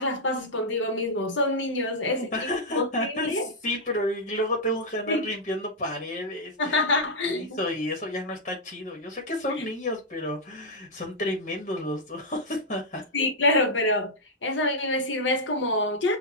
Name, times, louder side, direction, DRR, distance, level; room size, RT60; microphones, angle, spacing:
voice 1, 0.0-2.3 2.8-3.5 5.1-5.3 6.6-7.6 13.1-14.1 14.4-16.2, left 2 dB, 85° left, 1.3 m, -26 dB
voice 2, 2.0-6.8 7.3-13.0, left 1 dB, 40° left, 1.4 m, -31 dB
6.5 x 2.5 x 2.9 m
head